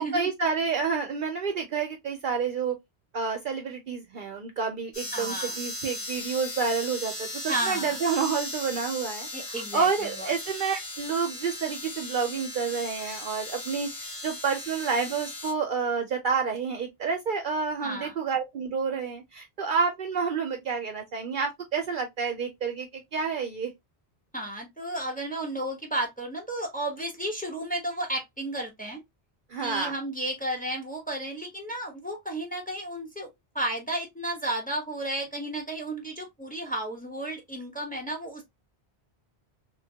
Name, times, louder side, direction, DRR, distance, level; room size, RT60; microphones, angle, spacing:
voice 1, 0.0-2.8 3.1-23.7 29.5-29.9, right 5 dB, 60° right, 0.7 m, -29 dB
sound 1, 4.9-15.5, left 1 dB, 85° left, 1.9 m, -37 dB
voice 2, 5.1-5.6 7.5-8.0 9.3-9.9 10.2-10.3 17.8-18.1 24.3-29.0 29.6-33.3 33.5-38.4, right 1 dB, 10° left, 0.9 m, -33 dB
3.2 x 2.2 x 2.7 m
omnidirectional pair, 1.1 m